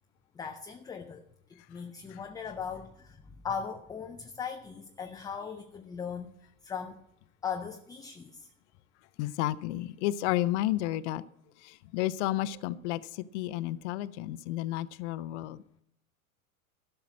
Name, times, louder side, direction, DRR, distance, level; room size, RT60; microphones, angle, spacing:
voice 1, 0.4-1.2 1.5-6.3 6.6-7.0 7.4-8.5, left 6 dB, 10° left, 4 dB, 0.4 m, -39 dB
voice 2, 9.2-11.2 11.6-13.0 13.3-15.8, left 15 dB, 50° left, 16 dB, 0.6 m, -31 dB
12.5 x 5.8 x 7.3 m, 0.76 s
hypercardioid pair, 90°, 43 cm